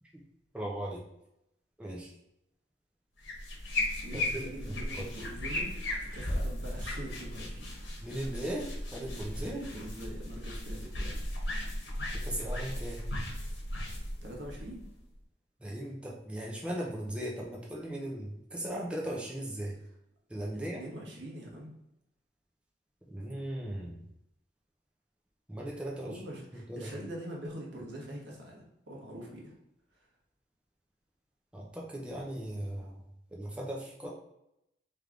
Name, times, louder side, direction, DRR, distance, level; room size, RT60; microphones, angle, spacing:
voice 1, 0.5-1.0 1.8-2.1 4.1-5.1 8.0-9.6 12.1-13.1 15.6-19.8 20.3-20.8 23.1-24.0 25.5-26.2 26.7-26.9 31.5-33.0 33.3-34.1, right 1 dB, 5° right, -3 dB, 0.6 m, -38 dB
sound 1, 3.2-15.1, left 1 dB, 70° left, 1.2 m, -36 dB
voice 2, 4.0-5.7 6.0-7.7 9.4-11.2 14.2-14.8 20.8-21.7 26.0-29.5 29.9-30.1, right 1 dB, 75° right, -2 dB, 1.3 m, -43 dB
3.4 x 3.3 x 3.6 m, 0.84 s
head